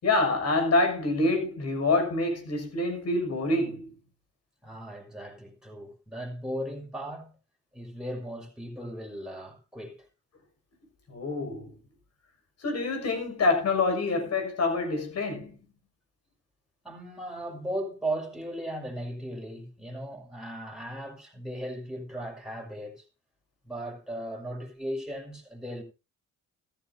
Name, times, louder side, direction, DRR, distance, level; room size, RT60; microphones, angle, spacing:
voice 1, 0.0-3.9 11.1-11.7 12.6-15.6, left 2 dB, 55° left, 6.4 m, -26 dB
voice 2, 4.6-7.4 7.7-10.1 16.8-23.1 23.6-25.8, right 1 dB, ahead, 5.7 m, -37 dB
14.5 x 14.0 x 2.8 m
cardioid pair, 90°, 30 cm